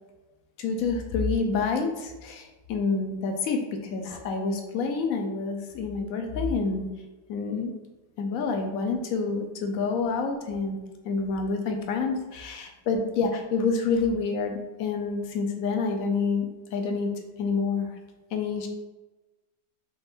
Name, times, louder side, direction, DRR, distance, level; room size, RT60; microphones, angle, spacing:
voice 1, 0.6-6.9 7.3-7.7 8.2-10.8 11.0-17.1 17.4-18.0 18.3-18.7, left 4 dB, 65° left, 4 dB, 1.0 m, -28 dB
5.2 x 2.5 x 3.5 m, 1.1 s
omnidirectional pair, 1.8 m